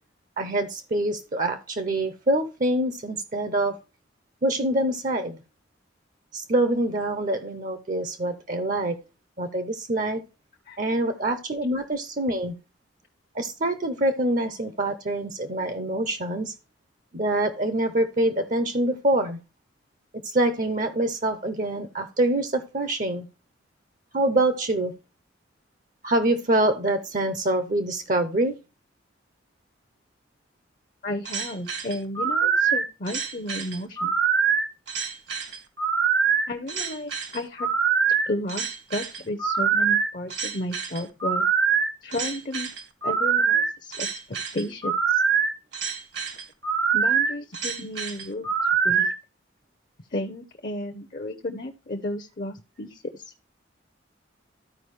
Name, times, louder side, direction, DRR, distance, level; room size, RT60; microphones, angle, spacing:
voice 1, 0.4-3.8 4.4-5.4 6.3-9.0 9.4-10.2 10.8-12.5 13.3-16.5 17.1-19.4 20.2-23.3 24.1-24.9 26.0-28.5, right 1 dB, 45° right, 9 dB, 0.7 m, -25 dB
voice 2, 31.0-34.2 36.5-37.7 38.2-41.5 42.0-42.7 43.0-45.2 46.9-48.5 48.8-49.1 50.1-53.3, left 1 dB, 45° left, 6 dB, 0.7 m, -33 dB
sound 1, 31.2-49.1, right 6 dB, 70° right, 1.5 m, -24 dB
13.5 x 4.9 x 3.2 m, 0.29 s
head